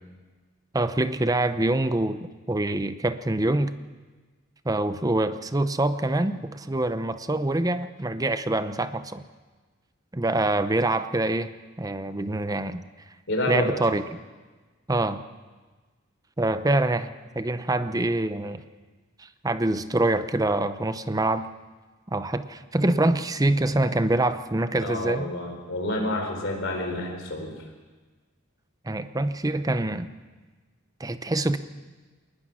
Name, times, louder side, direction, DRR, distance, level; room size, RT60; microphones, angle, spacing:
voice 1, 0.7-3.7 4.6-9.2 10.1-11.5 11.8-12.8 13.5-14.2 14.9-15.2 16.4-18.6 19.2-21.5 22.1-25.3 28.8-30.1 31.0-31.6, right 2 dB, 15° right, 11 dB, 0.7 m, -25 dB
voice 2, 13.3-13.7 24.8-27.6, left 1 dB, 60° left, 3 dB, 4.4 m, -29 dB
22.0 x 19.5 x 6.2 m, 1.3 s
head